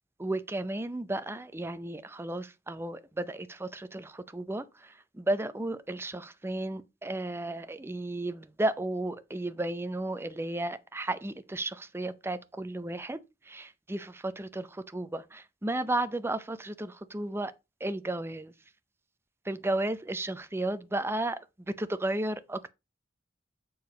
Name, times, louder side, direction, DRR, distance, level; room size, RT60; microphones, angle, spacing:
voice 1, 0.2-13.2 13.4-17.5 17.8-18.5 19.4-21.4 21.8-22.7, right 1 dB, 15° right, 0.5 m, -33 dB
6.8 x 4.7 x 5.1 m
head